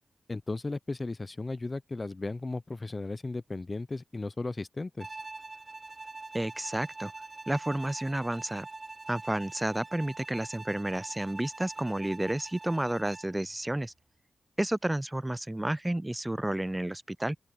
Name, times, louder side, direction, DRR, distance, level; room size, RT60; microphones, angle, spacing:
voice 1, 0.3-5.1, left 3 dB, 35° left, 0.7 m, -35 dB
Bowed string instrument, 5.0-13.4, right 3 dB, 40° right, 1.9 m, -44 dB
voice 2, 6.3-7.1 7.5-8.7 9.1-13.9 14.6-17.4, right 1 dB, 15° right, 0.4 m, -31 dB
open air
supercardioid pair, 40°, 0 cm